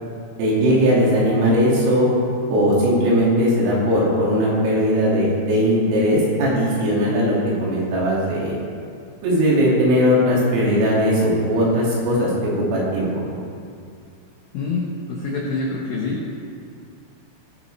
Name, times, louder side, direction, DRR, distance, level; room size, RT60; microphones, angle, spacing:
voice 1, 0.4-2.1 2.5-7.4 7.6-8.5 9.2-12.3 12.7-13.2, equal, 80° right, -5 dB, 5.0 m, -18 dB
voice 2, 14.5-16.2, left 3 dB, 70° left, -4 dB, 2.1 m, -26 dB
19.0 x 10.5 x 3.3 m, 2.3 s
omnidirectional pair, 5.9 m